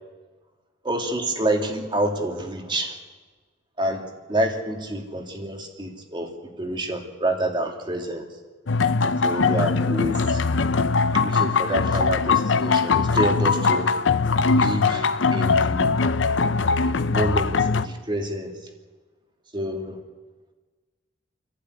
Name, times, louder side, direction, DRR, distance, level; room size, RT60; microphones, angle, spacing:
voice 1, 0.8-2.9 3.8-4.0 4.3-6.3 6.6-8.3 9.2-10.4 11.2-13.9 14.6-15.9 16.8-18.5 19.5-20.0, right 1 dB, 25° right, 3 dB, 2.5 m, -28 dB
sound 1, 8.7-17.9, left 4 dB, 70° left, 0.7 m, -21 dB
28.5 x 12.0 x 9.6 m, 1.3 s
head